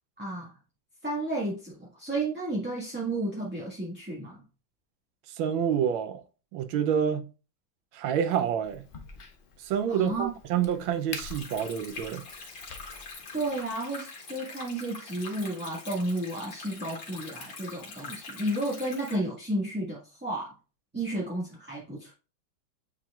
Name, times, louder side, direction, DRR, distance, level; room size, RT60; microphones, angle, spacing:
voice 1, 0.2-0.5 1.0-4.4 9.9-10.3 13.3-20.5 20.9-22.1, right 1 dB, 5° right, 1.4 m, -32 dB
voice 2, 5.3-6.2 6.5-7.3 7.9-8.8 9.6-12.2, right 8 dB, 85° right, 1.5 m, -28 dB
Crack, 8.6-13.7, left 4 dB, 75° left, 0.4 m, -46 dB
Stream, 11.2-19.2, left 4 dB, 90° left, 2.6 m, -44 dB
9.0 x 4.4 x 2.4 m
omnidirectional pair, 2.1 m